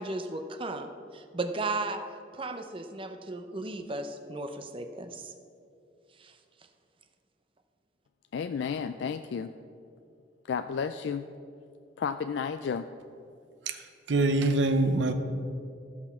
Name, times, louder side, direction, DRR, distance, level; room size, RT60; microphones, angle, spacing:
voice 1, 0.0-2.0 2.3-5.3 6.2-6.3, right 2 dB, 30° right, 7 dB, 0.6 m, -35 dB
voice 2, 8.3-9.5 10.5-11.3 12.0-12.9, left 6 dB, 75° left, 9 dB, 0.3 m, -32 dB
voice 3, 14.1-15.1, right 2 dB, 80° right, 8 dB, 0.7 m, -24 dB
13.0 x 6.1 x 5.6 m, 2.5 s
head